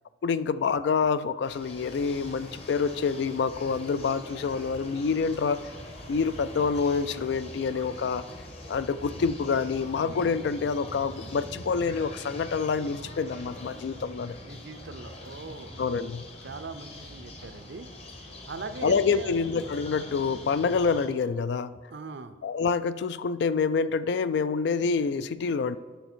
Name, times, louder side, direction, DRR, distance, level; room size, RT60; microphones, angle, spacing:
voice 1, 0.2-5.7 6.1-8.2 8.7-14.4 15.8-16.3 18.8-21.7 22.4-25.8, left 5 dB, 60° left, 15 dB, 0.3 m, -27 dB
sound 1, 1.4-21.1, left 1 dB, 30° left, 0.9 m, -43 dB
voice 2, 14.4-15.7 16.4-17.9 18.4-19.4 21.9-22.3, right 3 dB, 60° right, 11 dB, 0.5 m, -40 dB
9.3 x 6.2 x 4.4 m, 1.5 s
head